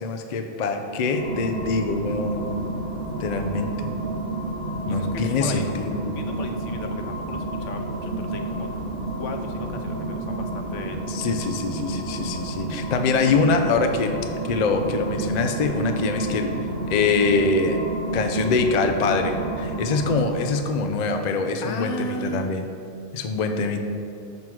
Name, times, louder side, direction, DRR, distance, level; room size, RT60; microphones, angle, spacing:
voice 1, 0.0-2.5 3.2-3.9 4.9-6.0 11.1-14.2 14.5-16.5 16.9-17.8 18.1-22.6 23.1-23.8, left 4 dB, 55° left, 5 dB, 0.5 m, -24 dB
sound 1, 0.9-20.6, right 2 dB, 55° right, 1.2 m, -30 dB
voice 2, 4.8-5.7 6.1-8.7 9.2-11.0 21.6-22.5, left 2 dB, 75° left, 5 dB, 1.0 m, -35 dB
6.1 x 5.4 x 4.6 m, 2.6 s
omnidirectional pair, 1.3 m